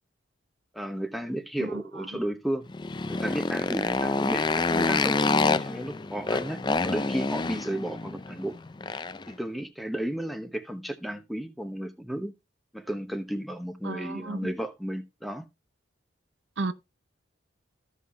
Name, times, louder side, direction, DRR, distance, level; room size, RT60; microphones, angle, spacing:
voice 1, 0.7-2.7 3.1-8.5 9.3-12.3 12.7-15.5, right 1 dB, ahead, 0.8 m, -33 dB
voice 2, 1.6-2.2 13.8-14.4 16.6-16.7, right 3 dB, 80° right, 0.8 m, -34 dB
Motorcycle, 2.7-9.3, left 3 dB, 25° left, 0.4 m, -27 dB
14.5 x 5.7 x 3.1 m
head